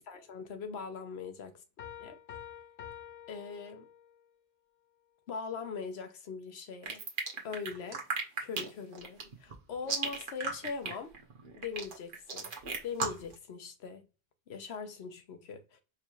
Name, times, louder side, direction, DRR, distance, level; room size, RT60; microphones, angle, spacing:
voice 1, 0.0-1.5 2.0-2.2 3.3-3.9 5.3-7.0 7.4-8.0 8.4-11.1 11.5-12.5 12.8-14.1 14.5-15.8, left 5 dB, 90° left, 1.0 m, -41 dB
sound 1, 1.8-4.3, left 10 dB, 65° left, 0.9 m, -48 dB
sound 2, 6.8-13.3, right 4 dB, 55° right, 1.0 m, -35 dB
4.7 x 3.1 x 2.4 m
omnidirectional pair, 1.1 m